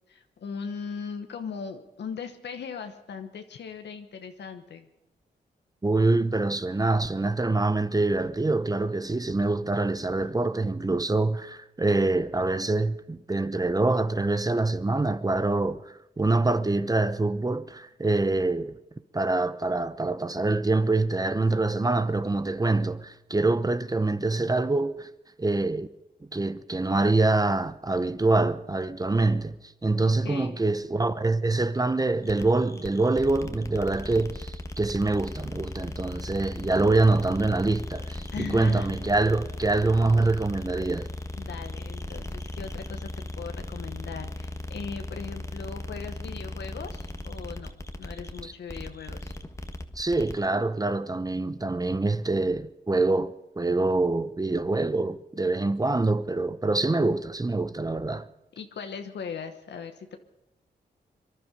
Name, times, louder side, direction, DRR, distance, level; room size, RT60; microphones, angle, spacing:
voice 1, 0.1-4.9 10.2-10.3 30.0-30.6 38.3-39.0 41.3-43.1 43.4-47.7 48.0-49.3 58.6-60.2, left 6 dB, 80° left, 1.2 m, -39 dB
voice 2, 5.8-15.8 16.2-18.8 19.1-25.1 25.4-25.9 26.3-29.6 29.8-41.1 50.0-58.3, right 2 dB, 20° right, 0.8 m, -25 dB
sound 1, 32.2-50.5, left 1 dB, 15° left, 1.4 m, -37 dB
23.5 x 11.5 x 5.3 m
cardioid pair, 60°, 18 cm